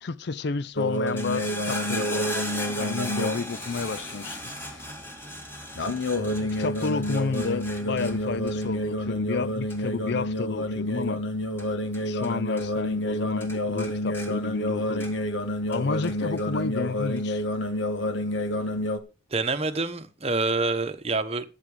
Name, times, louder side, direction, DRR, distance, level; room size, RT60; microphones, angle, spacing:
voice 1, 0.0-2.3 2.7-4.5 6.3-11.2 12.0-15.1 15.7-17.4, left 4 dB, 55° left, 0.5 m, -31 dB
sound 1, 0.8-4.3 5.7-19.0, left 1 dB, 70° left, 1.5 m, -29 dB
sound 2, 0.9-12.3 12.6-13.1 13.4-15.4 15.7-16.5 17.2-17.3, left 1 dB, 10° left, 2.1 m, -38 dB
voice 2, 19.3-21.5, right 3 dB, 30° right, 1.0 m, -27 dB
13.5 x 7.6 x 5.0 m
head